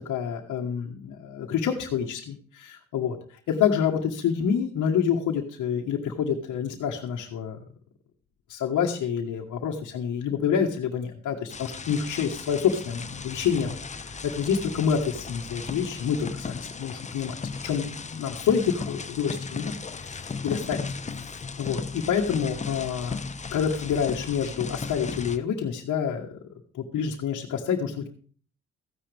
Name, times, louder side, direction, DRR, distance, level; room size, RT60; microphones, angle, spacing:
voice 1, 0.0-7.6 8.5-17.4 17.6-21.3 21.6-23.1 23.5-26.4 26.7-28.1, left 7 dB, 75° left, -1 dB, 1.6 m, -28 dB
sound 1, 11.5-25.4, left 4 dB, 25° left, 0.8 m, -36 dB
15.0 x 10.0 x 3.5 m, 0.43 s
cardioid pair, 90°, 30 cm